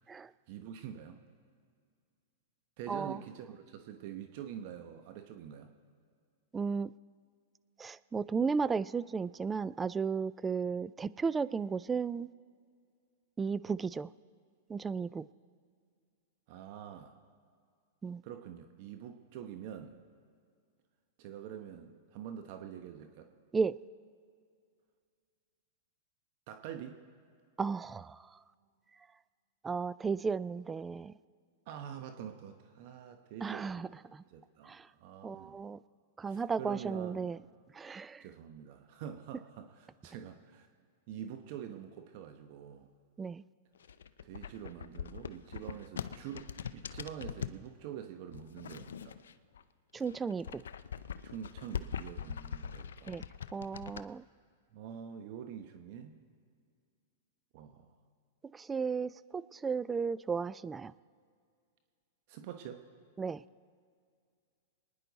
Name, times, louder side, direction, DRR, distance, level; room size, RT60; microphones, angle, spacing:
voice 1, 0.2-1.2 2.8-5.7 16.5-17.1 18.2-19.9 21.2-23.3 26.5-27.0 31.7-33.9 34.3-35.6 36.3-37.3 38.2-40.7 41.1-42.9 44.2-49.2 51.2-53.1 53.9-54.0 54.7-56.2 57.5-57.9 62.3-62.8, right 9 dB, 55° right, 7 dB, 0.9 m, -46 dB
voice 2, 2.9-3.2 6.5-6.9 7.8-12.3 13.4-14.1 14.7-15.3 18.0-18.2 23.5-23.8 27.6-28.4 29.6-31.1 33.4-34.2 34.7-34.9 35.2-35.8 36.2-37.4 37.7-38.3 43.2-43.4 49.9-50.6 53.1-53.2 53.5-54.2 58.5-60.9 63.2-63.4, right 5 dB, 15° right, 18 dB, 0.3 m, -34 dB
sound 1, 43.8-47.6 48.3-49.6 49.9-54.0, left 8 dB, 85° left, 0.5 m, -42 dB
25.0 x 10.0 x 4.1 m, 2.2 s
hypercardioid pair, 120°, 0 cm